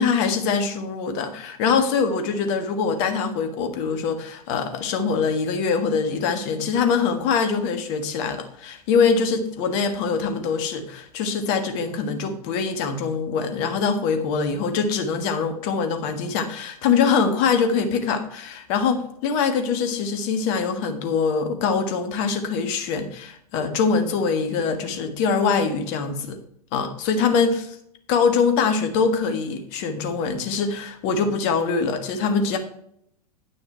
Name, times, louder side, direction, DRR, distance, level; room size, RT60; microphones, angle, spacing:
voice 1, 0.0-26.4 26.7-27.7 28.1-32.6, left 5 dB, 45° left, 7 dB, 1.5 m, -23 dB
9.4 x 6.4 x 4.4 m, 0.71 s
figure-of-eight pair, 95°, 20 cm